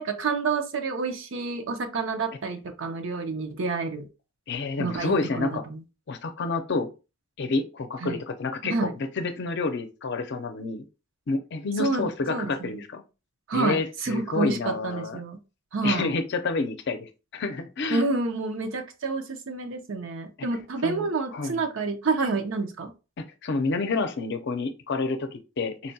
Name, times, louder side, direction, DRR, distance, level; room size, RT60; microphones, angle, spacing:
voice 1, 0.0-4.1 4.8-5.8 8.0-8.2 8.6-8.9 11.8-12.8 13.5-15.4 15.7-16.1 17.9-22.9, right 3 dB, 70° right, 0.6 m, -29 dB
voice 2, 4.5-5.6 6.1-6.9 7.4-8.9 9.2-10.8 11.3-13.0 13.5-15.2 15.8-18.0 20.4-20.5 20.8-21.6 23.4-25.9, left 3 dB, 60° left, 0.5 m, -29 dB
4.1 x 2.2 x 2.7 m
head